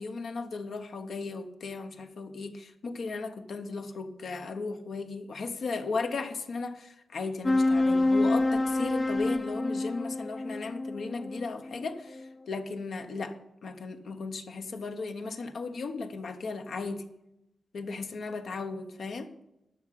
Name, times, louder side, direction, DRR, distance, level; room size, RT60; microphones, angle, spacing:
voice 1, 0.0-17.1 17.7-19.3, left 4 dB, 65° left, 6 dB, 1.2 m, -36 dB
sound 1, 7.4-12.3, left 2 dB, 20° left, 0.5 m, -27 dB
11.5 x 6.4 x 7.7 m, 0.86 s
wide cardioid pair, 135°, 0 cm